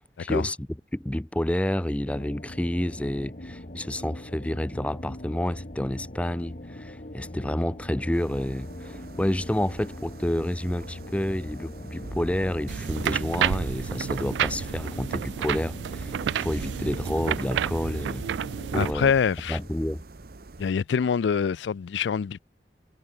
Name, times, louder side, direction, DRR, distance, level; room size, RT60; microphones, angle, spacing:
voice 1, 0.0-18.2 18.7-19.1 19.5-20.0, left 1 dB, 5° left, 0.5 m, -29 dB
sound 1, 2.0-18.8, left 1 dB, 45° left, 1.9 m, -41 dB
sound 2, 8.1-20.7, right 2 dB, 60° right, 0.9 m, -43 dB
sound 3, 12.7-18.9, right 9 dB, 80° right, 0.3 m, -30 dB
voice 2, 18.7-19.6 20.6-22.4, left 6 dB, 90° left, 0.4 m, -25 dB
head